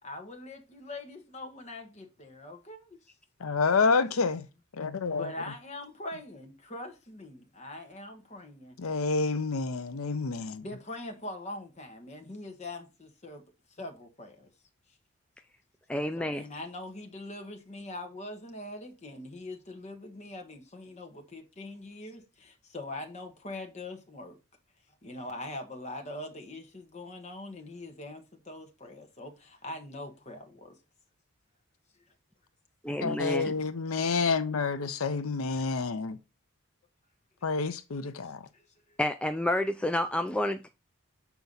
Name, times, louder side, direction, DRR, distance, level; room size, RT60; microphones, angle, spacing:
voice 1, 0.0-3.1 5.1-8.8 10.6-13.4 13.7-14.5 14.9-15.0 16.2-24.4 25.0-30.8 35.5-35.6 38.5-39.0, left 2 dB, 35° left, 1.3 m, -42 dB
voice 2, 3.4-4.5 4.8-5.3 8.8-10.6 33.0-36.2 37.4-38.4, left 4 dB, 80° left, 0.6 m, -28 dB
voice 3, 15.9-16.4 32.9-33.5 39.0-40.7, left 1 dB, 5° left, 0.3 m, -29 dB
7.0 x 4.6 x 4.0 m
head